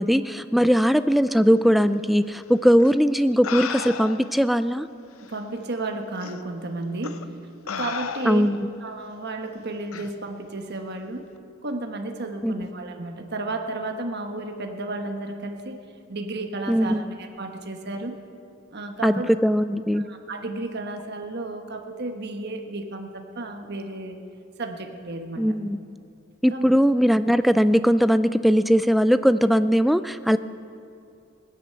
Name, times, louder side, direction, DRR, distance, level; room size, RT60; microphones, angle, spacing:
voice 1, 0.0-4.9 8.2-8.7 12.4-12.7 16.7-17.0 19.0-20.1 25.4-25.8 26.4-30.4, equal, ahead, 12 dB, 0.3 m, -20 dB
sound 1, 2.8-2.9 3.4-4.4 5.3-5.4 6.2-6.4 7.0-7.2 7.7-8.6 9.9-10.1, left 6 dB, 90° left, 0.7 m, -33 dB
voice 2, 5.2-7.3 7.6-8.5 8.8-11.3 11.6-15.8 16.1-18.2 18.7-19.3 19.9-24.2 24.6-25.5 26.5-26.7, right 2 dB, 50° right, 5 dB, 1.3 m, -33 dB
18.5 x 10.0 x 7.6 m, 2.5 s
head